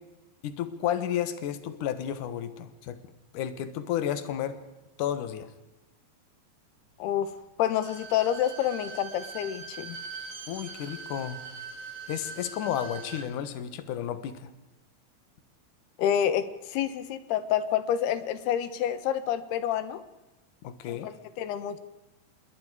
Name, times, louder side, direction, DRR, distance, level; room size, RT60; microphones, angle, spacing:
voice 1, 0.4-3.0 3.3-4.6 5.0-5.5 10.5-11.4 12.1-14.5 20.6-21.1, left 10 dB, 60° left, 11 dB, 2.6 m, -32 dB
voice 2, 7.6-10.0 16.0-20.0 20.9-21.8, left 10 dB, 85° left, 13 dB, 3.2 m, -28 dB
Bowed string instrument, 7.6-13.3 13.6-13.7, right 5 dB, 50° right, 4.2 m, -42 dB
27.5 x 21.5 x 4.9 m, 1.0 s
omnidirectional pair, 4.5 m